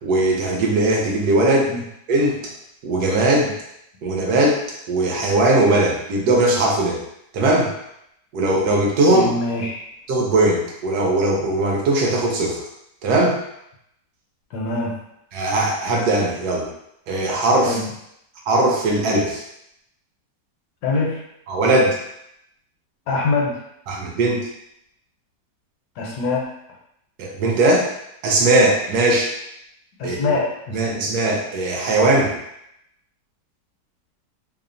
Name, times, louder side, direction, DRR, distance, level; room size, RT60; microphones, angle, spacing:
voice 1, 0.0-1.7 2.1-2.4 2.8-3.5 4.0-4.6 4.9-7.0 7.3-7.7 8.3-9.3 10.1-12.6 13.0-13.4 15.3-16.7 17.1-17.8 18.5-19.4 21.5-22.0 23.9-24.5 27.2-27.9 28.2-29.3 30.0-30.3 30.7-32.3, right 2 dB, 70° right, -2 dB, 1.1 m, -19 dB
voice 2, 9.1-9.8 14.5-15.0 17.6-17.9 20.8-21.2 23.1-23.6 26.0-26.4 30.0-31.1, left 3 dB, 75° left, -2 dB, 1.1 m, -24 dB
3.0 x 2.0 x 2.5 m, 0.78 s
omnidirectional pair, 1.9 m